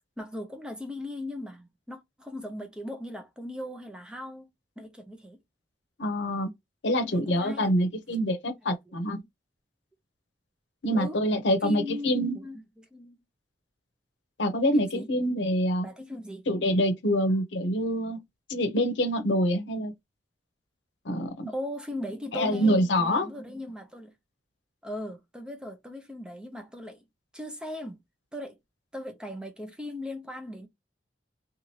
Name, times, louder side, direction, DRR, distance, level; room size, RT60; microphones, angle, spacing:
voice 1, 0.2-5.4 7.0-7.7 10.9-11.2 11.6-13.2 14.7-15.1 15.8-16.5 21.5-24.1 24.8-27.0 27.3-28.0 28.3-28.6 28.9-30.7, left 1 dB, 5° right, 0.5 m, -38 dB
voice 2, 6.0-6.5 6.8-9.2 10.8-12.4 14.4-15.9 16.5-18.2 18.5-19.9 21.0-21.5 22.3-23.3, equal, 85° left, 0.7 m, -26 dB
2.8 x 2.4 x 3.0 m
head